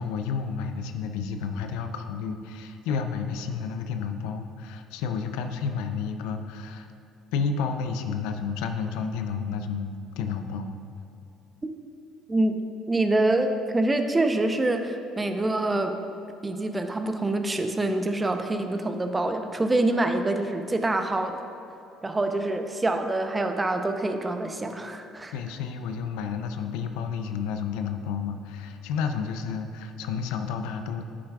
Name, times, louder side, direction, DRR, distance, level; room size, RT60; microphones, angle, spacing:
voice 1, 0.0-6.9 7.3-9.9 10.2-10.7 25.3-31.1, left 6 dB, 75° left, 7 dB, 0.5 m, -31 dB
voice 2, 12.3-12.6 12.9-16.0 16.4-21.5 22.0-25.3, right 2 dB, 20° right, 6 dB, 0.7 m, -26 dB
10.0 x 8.5 x 2.4 m, 2.7 s
hypercardioid pair, 60°, 0 cm